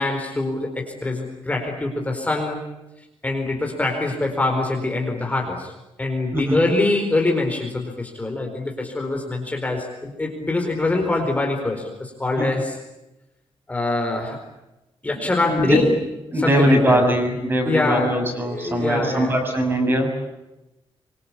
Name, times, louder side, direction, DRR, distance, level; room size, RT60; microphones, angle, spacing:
voice 1, 0.0-2.6 3.2-5.7 6.0-12.8 13.7-14.4 15.0-15.9 16.3-17.0 17.6-18.2 18.5-19.3, left 2 dB, 15° left, 1 dB, 4.5 m, -24 dB
voice 2, 15.4-15.9 16.3-20.1, equal, 25° right, 3 dB, 6.7 m, -21 dB
26.0 x 24.5 x 8.6 m, 0.97 s
wide cardioid pair, 170°, 10 cm